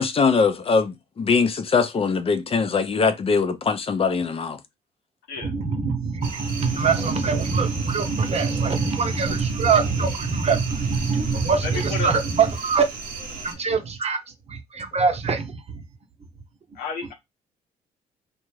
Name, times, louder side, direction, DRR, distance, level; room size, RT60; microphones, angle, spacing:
voice 1, 0.0-4.6, left 5 dB, 40° left, 0.6 m, -22 dB
voice 2, 5.4-12.9 13.4-14.2 14.5-15.5, right 5 dB, 45° right, 0.8 m, -23 dB
sound 1, 6.2-13.5, right 4 dB, 75° right, 0.8 m, -35 dB
voice 3, 11.6-12.1 16.7-17.1, left 4 dB, 85° left, 0.8 m, -31 dB
2.4 x 2.2 x 3.1 m
supercardioid pair, 55°, 15 cm